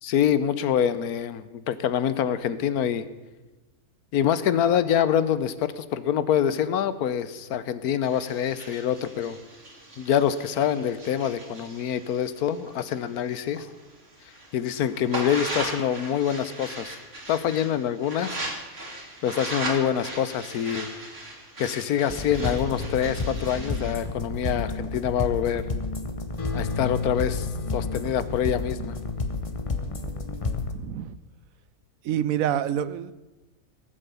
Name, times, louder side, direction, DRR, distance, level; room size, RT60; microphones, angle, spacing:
voice 1, 0.0-3.1 4.1-9.4 10.0-13.7 14.5-16.9 17.3-18.4 19.2-20.9 21.6-25.6 26.5-29.0, left 9 dB, 85° left, 1.3 m, -25 dB
sound 1, 8.0-13.6 14.0-23.9, right 1 dB, 45° right, 2.8 m, -38 dB
sound 2, 22.1-30.7, left 3 dB, 25° left, 1.0 m, -30 dB
voice 2, 30.7-31.2 32.0-33.1, right 10 dB, 70° right, 1.0 m, -27 dB
19.0 x 7.5 x 6.9 m
omnidirectional pair, 1.6 m